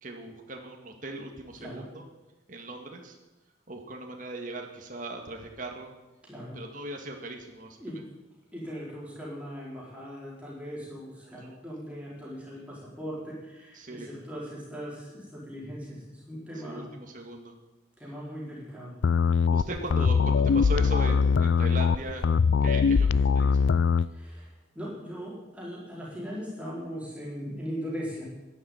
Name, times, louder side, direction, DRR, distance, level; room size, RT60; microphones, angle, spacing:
voice 1, 0.0-2.1 2.5-3.2 3.7-5.9 6.5-8.0 11.2-11.6 13.7-14.1 16.6-17.6 19.5-22.3 22.6-23.7, right 1 dB, 40° right, 2 dB, 2.0 m, -38 dB
voice 2, 6.2-6.6 7.8-8.0 8.5-16.8 18.0-19.0 24.1-28.3, equal, 5° right, -6 dB, 4.7 m, -39 dB
sound 1, 19.0-24.1, left 5 dB, 75° left, 0.4 m, -22 dB
11.0 x 11.0 x 9.2 m, 1.1 s
head